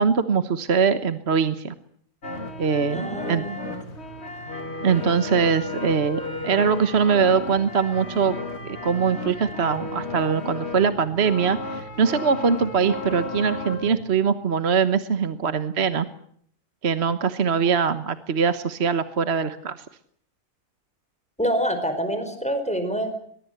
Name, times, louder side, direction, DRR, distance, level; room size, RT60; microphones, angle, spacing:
voice 1, 0.0-1.7 2.6-3.5 4.8-8.4 8.6-16.1 16.8-19.8, right 6 dB, 45° right, 11 dB, 1.4 m, -22 dB
sound 1, 2.2-14.0, left 2 dB, 45° left, 2.7 m, -34 dB
voice 2, 2.9-3.5 21.4-23.1, equal, 5° left, 8 dB, 4.9 m, -26 dB
22.5 x 21.5 x 8.0 m, 0.63 s
omnidirectional pair, 1.6 m